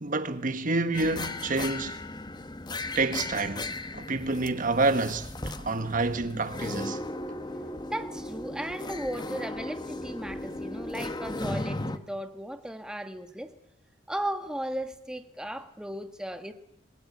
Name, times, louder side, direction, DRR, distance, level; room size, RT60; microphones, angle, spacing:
voice 1, 0.0-2.0 2.9-5.3 5.6-7.0, right 3 dB, 45° right, 1.4 m, -28 dB
sound 1, 0.9-12.0, left 2 dB, 25° left, 1.2 m, -36 dB
voice 2, 7.8-13.5 14.1-16.5, right 1 dB, 5° right, 1.4 m, -36 dB
26.0 x 21.0 x 9.7 m
head